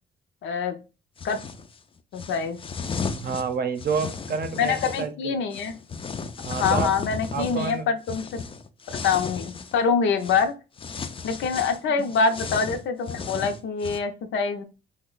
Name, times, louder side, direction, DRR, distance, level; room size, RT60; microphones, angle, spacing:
voice 1, 0.4-0.8 1.2-1.4 2.1-2.6 4.6-5.8 6.5-8.4 8.9-10.5 11.2-14.6, left 5 dB, 70° left, 8 dB, 0.6 m, -25 dB
sound 1, 1.2-1.7 2.2-5.1 5.5-9.8 10.2-10.5 10.8-14.0, left 5 dB, 25° left, 0.3 m, -34 dB
voice 2, 3.2-5.4 6.4-6.9 7.3-7.9 12.0-12.1, right 5 dB, 50° right, 8 dB, 0.7 m, -29 dB
2.9 x 2.1 x 3.8 m, 0.31 s
cardioid pair, 90°, 20 cm